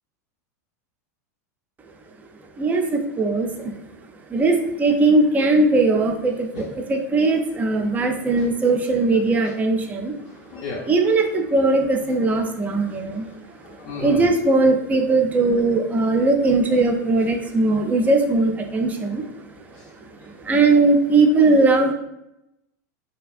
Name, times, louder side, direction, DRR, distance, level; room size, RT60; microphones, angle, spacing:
voice 1, 2.6-3.7 4.3-10.2 10.9-13.3 13.6-19.4 20.2-21.9, right 3 dB, 15° right, 3 dB, 0.4 m, -19 dB
voice 2, 10.2-10.9 12.8-14.3 19.7-20.6, left 4 dB, 50° left, -3 dB, 0.5 m, -37 dB
2.7 x 2.4 x 2.4 m, 0.85 s
supercardioid pair, 125°, 9 cm